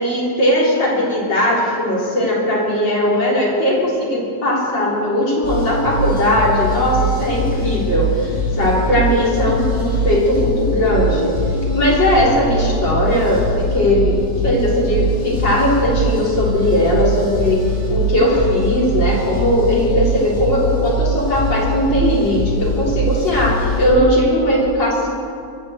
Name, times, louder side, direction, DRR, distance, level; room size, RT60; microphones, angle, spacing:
voice 1, 0.0-11.3 11.7-17.6 17.9-25.1, left 1 dB, 80° left, -5 dB, 4.4 m, -18 dB
sound 1, 5.4-23.9, right 1 dB, 35° left, 4.6 m, -22 dB
22.5 x 7.8 x 7.9 m, 2.3 s
omnidirectional pair, 1.9 m